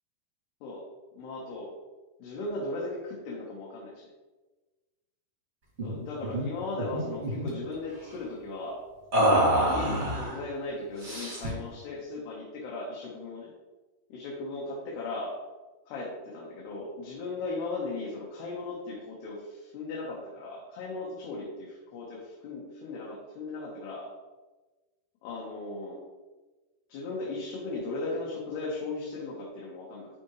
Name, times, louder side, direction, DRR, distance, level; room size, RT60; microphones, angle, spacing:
voice 1, 1.1-1.7 2.2-4.1 5.8-8.8 9.5-13.5 14.1-15.4 15.9-24.1 25.2-26.0 26.9-30.1, left 2 dB, 75° left, -4 dB, 3.3 m, -37 dB
sound 1, 5.8-6.0 6.2-6.4 6.8-7.5 9.1-10.4 11.0-11.6, right 1 dB, 25° right, 1.9 m, -26 dB
12.0 x 4.8 x 3.2 m, 1.2 s
omnidirectional pair, 4.8 m